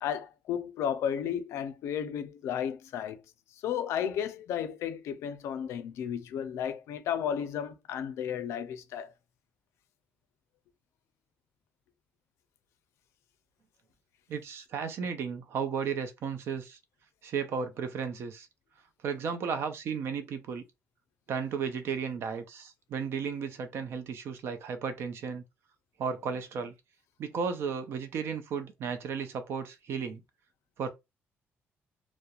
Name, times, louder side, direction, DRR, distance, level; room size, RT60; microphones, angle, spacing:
voice 1, 0.0-3.2 3.6-9.1, left 9 dB, 80° left, 0.4 m, -33 dB
voice 2, 14.3-16.8 17.2-18.5 19.0-20.6 21.3-25.4 26.0-26.7 27.2-30.2 30.8-30.9, right 6 dB, 60° right, 0.5 m, -34 dB
2.3 x 2.0 x 2.8 m
cardioid pair, 140°, 5 cm